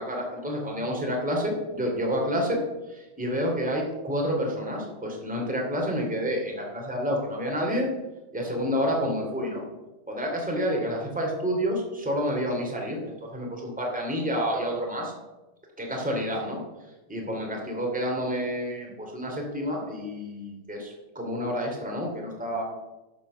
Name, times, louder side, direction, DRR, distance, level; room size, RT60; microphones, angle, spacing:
voice 1, 0.0-2.6 2.9-7.9 8.3-9.6 10.1-15.1 15.8-16.6 17.1-22.6, equal, 5° right, -1 dB, 1.2 m, -29 dB
11.5 x 7.2 x 6.8 m, 1.1 s
omnidirectional pair, 5.2 m